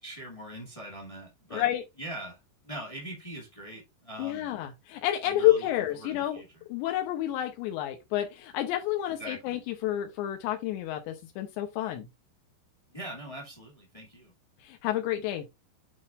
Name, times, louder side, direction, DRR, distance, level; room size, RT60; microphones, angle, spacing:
voice 1, 0.0-1.6 2.0-2.4 2.6-4.5 5.2-5.7 6.0-6.6 9.2-9.6 12.9-14.3, right 1 dB, 20° left, 0.8 m, -42 dB
voice 2, 1.5-1.8 4.2-6.4 6.7-12.1 14.6-15.4, left 13 dB, 85° left, 3.1 m, -29 dB
8.8 x 5.3 x 2.5 m
omnidirectional pair, 5.1 m